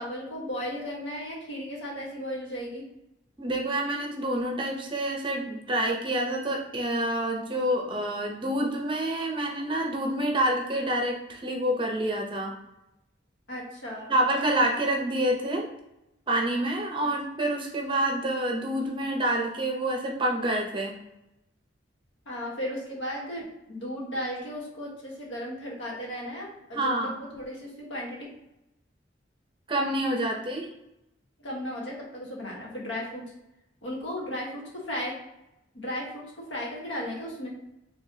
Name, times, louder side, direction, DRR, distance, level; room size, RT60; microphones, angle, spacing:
voice 1, 0.0-2.9 13.5-14.1 22.2-28.3 31.4-33.2 33.8-35.1 35.7-37.5, equal, 85° left, -3 dB, 1.4 m, -35 dB
voice 2, 3.4-12.5 14.1-15.7 16.3-21.0 26.7-27.2 29.7-30.7, right 1 dB, 25° right, 1 dB, 0.7 m, -27 dB
4.5 x 3.3 x 2.8 m, 0.90 s
head